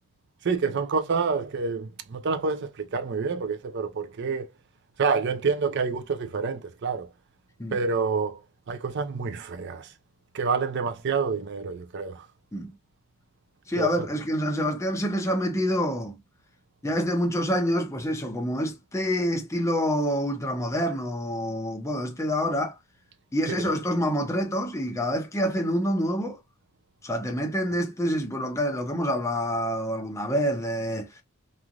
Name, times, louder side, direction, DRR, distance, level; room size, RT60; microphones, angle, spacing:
voice 1, 0.4-4.5 5.0-7.1 7.7-8.4 8.7-9.9 10.3-12.3 13.8-13.9 23.5-23.7, right 5 dB, 55° right, 0.4 m, -28 dB
voice 2, 13.7-16.2 16.8-22.8 23.3-26.4 27.0-31.1, equal, 15° left, 0.6 m, -27 dB
3.1 x 2.4 x 2.3 m
head